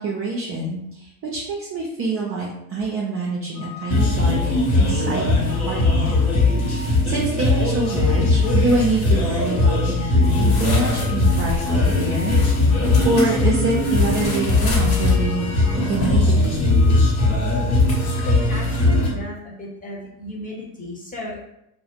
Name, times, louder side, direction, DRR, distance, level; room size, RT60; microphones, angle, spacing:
voice 1, 0.0-6.1 6.7-12.3 13.0-15.5 15.8-16.6, right 2 dB, 30° right, -3 dB, 0.5 m, -26 dB
sound 1, 3.5-18.3, left 2 dB, 85° left, 0.9 m, -39 dB
sound 2, 3.9-19.1, left 2 dB, 60° left, 1.1 m, -19 dB
voice 2, 18.2-21.5, equal, 15° left, -4 dB, 0.9 m, -34 dB
2.4 x 2.1 x 3.0 m, 0.81 s
hypercardioid pair, 75°, 49 cm